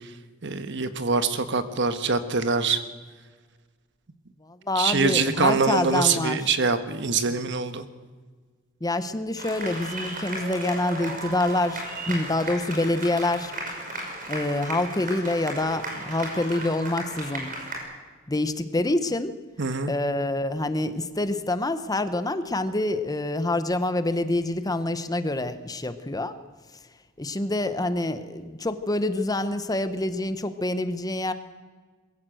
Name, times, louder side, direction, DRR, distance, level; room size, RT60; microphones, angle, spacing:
voice 1, 0.4-2.8 4.7-7.9 19.6-19.9, right 4 dB, 60° right, 10 dB, 1.4 m, -24 dB
voice 2, 4.4-6.5 8.8-13.5 14.3-17.5 18.3-19.3 19.9-26.3 27.2-31.3, left 2 dB, 20° left, 11 dB, 0.9 m, -26 dB
sound 1, 9.4-17.8, right 1 dB, 45° right, 5.8 m, -35 dB
21.5 x 15.5 x 7.8 m, 1.4 s
head